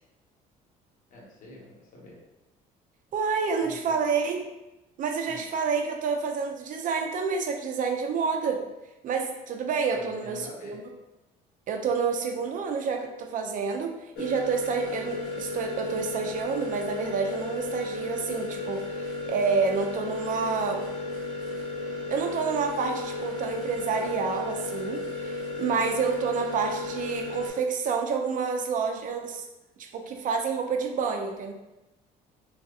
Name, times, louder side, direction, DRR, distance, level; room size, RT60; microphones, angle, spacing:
voice 1, 1.1-2.2 3.6-4.0 5.2-5.4 9.9-10.7, left 1 dB, 50° left, -3 dB, 0.9 m, -46 dB
voice 2, 3.1-4.5 5.0-8.6 9.0-10.8 11.7-20.8 22.1-29.4 29.8-31.5, right 5 dB, 50° right, 3 dB, 0.4 m, -29 dB
sound 1, 14.2-27.5, left 3 dB, 85° left, 0.8 m, -34 dB
3.2 x 2.7 x 2.4 m, 0.98 s
cardioid pair, 110°, 17 cm